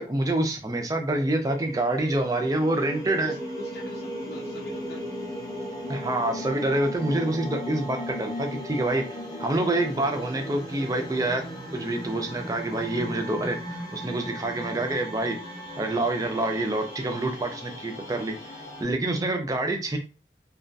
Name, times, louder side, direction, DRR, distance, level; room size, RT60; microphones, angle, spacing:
voice 1, 0.0-3.3 5.9-9.0 9.4-11.4 11.7-15.4 15.8-18.5 18.8-20.0, right 2 dB, 20° right, 4 dB, 0.4 m, -27 dB
sound 1, 1.1-18.8, equal, 20° left, 0.6 m, -37 dB
voice 2, 3.2-5.1 6.2-6.3 18.5-18.6, left 3 dB, 75° left, -1 dB, 0.5 m, -45 dB
2.3 x 2.2 x 2.5 m, 0.33 s
head